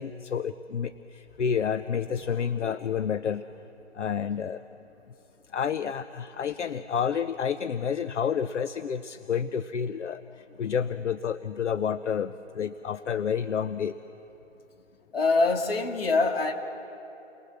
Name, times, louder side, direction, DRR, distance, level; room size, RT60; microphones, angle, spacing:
voice 1, 0.0-3.5 3.9-4.6 5.5-14.0, left 7 dB, 70° left, 13 dB, 0.8 m, -29 dB
voice 2, 15.1-16.5, left 3 dB, 50° left, 4 dB, 2.3 m, -24 dB
29.5 x 22.0 x 7.3 m, 3.0 s
hypercardioid pair, 165°, 37 cm